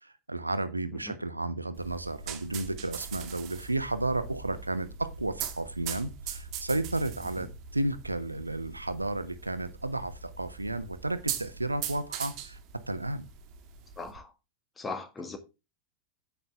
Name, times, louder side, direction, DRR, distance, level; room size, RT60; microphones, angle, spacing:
voice 1, 0.0-12.6 12.9-13.3, right 2 dB, 85° right, 1.0 m, -33 dB
sound 1, 1.8-14.2, right 8 dB, 40° right, 2.0 m, -41 dB
voice 2, 14.0-14.3 14.8-15.4, left 3 dB, 15° left, 1.8 m, -38 dB
9.7 x 8.3 x 3.4 m
figure-of-eight pair, 90°, 0 cm